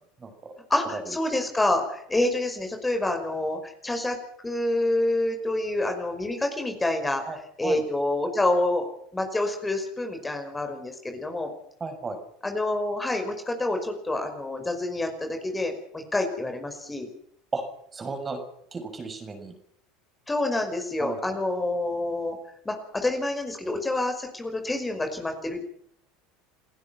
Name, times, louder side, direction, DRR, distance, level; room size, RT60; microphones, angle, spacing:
voice 1, 0.7-4.2 4.4-8.9 9.1-11.5 12.4-17.1 20.3-22.4 22.7-25.6, left 2 dB, 15° left, 5 dB, 5.4 m, -27 dB
voice 2, 11.8-12.2 17.5-17.6 17.9-18.4 18.7-19.5 21.0-21.4, right 3 dB, 25° right, 6 dB, 6.2 m, -34 dB
29.0 x 16.0 x 6.1 m, 0.68 s
hypercardioid pair, 80°, 0 cm